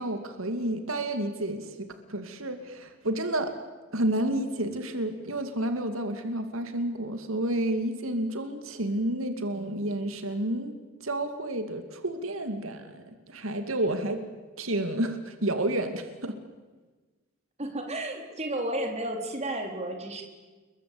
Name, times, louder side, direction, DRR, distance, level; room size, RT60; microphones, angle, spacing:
voice 1, 0.0-3.5 3.9-10.7 11.0-14.2 14.6-16.3, right 1 dB, 85° right, 8 dB, 2.4 m, -30 dB
voice 2, 17.6-20.2, right 1 dB, 35° right, 4 dB, 4.2 m, -32 dB
29.5 x 22.0 x 8.6 m, 1.3 s
head